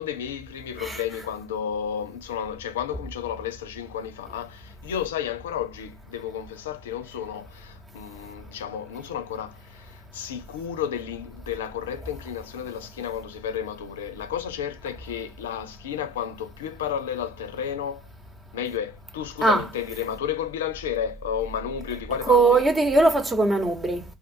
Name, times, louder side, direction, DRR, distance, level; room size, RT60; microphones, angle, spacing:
voice 1, 0.0-18.1 18.5-22.6, left 8 dB, 85° left, 0.4 m, -32 dB
voice 2, 22.3-24.0, right 3 dB, 30° right, 1.0 m, -20 dB
2.5 x 2.3 x 2.6 m
hypercardioid pair, 50°, 0 cm